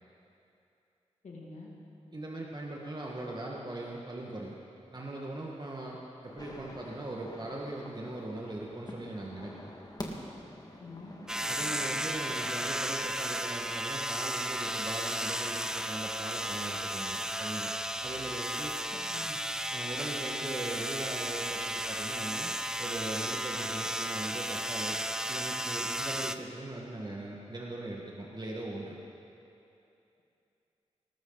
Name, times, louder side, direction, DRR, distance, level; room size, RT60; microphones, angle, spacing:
voice 1, 1.2-1.7 10.8-11.1 18.9-19.4, left 3 dB, 75° left, -2 dB, 2.5 m, -46 dB
voice 2, 2.1-4.6 4.9-9.7 11.5-17.7 18.0-18.8 19.7-22.5 22.8-25.0 25.3-29.0, right 2 dB, 35° right, -2 dB, 1.8 m, -40 dB
sound 1, 6.2-12.9, left 1 dB, 30° left, 2.0 m, -47 dB
sound 2, 11.3-26.4, equal, 5° right, 0.6 m, -34 dB
19.0 x 13.5 x 4.1 m, 2.7 s
cardioid pair, 40°, 12 cm